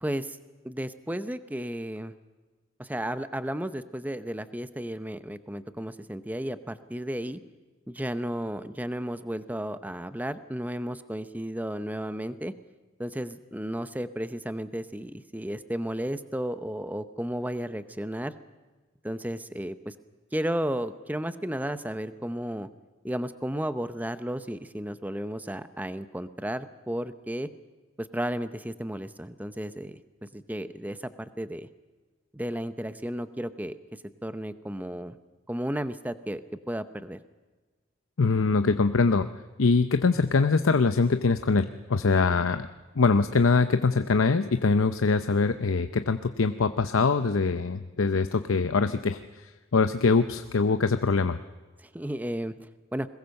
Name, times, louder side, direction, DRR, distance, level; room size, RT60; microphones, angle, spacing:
voice 1, 0.0-0.4 0.6-2.1 2.8-7.4 7.9-12.5 13.0-18.3 19.0-19.9 20.3-22.7 23.0-27.5 28.0-31.7 32.3-35.2 35.5-36.4 36.7-37.2 51.8-52.5 52.9-53.1, equal, 10° right, 12 dB, 0.7 m, -33 dB
voice 2, 38.2-39.3 39.6-42.7 43.0-51.4, left 4 dB, 80° left, 9 dB, 0.7 m, -23 dB
22.0 x 20.5 x 6.6 m, 1.3 s
head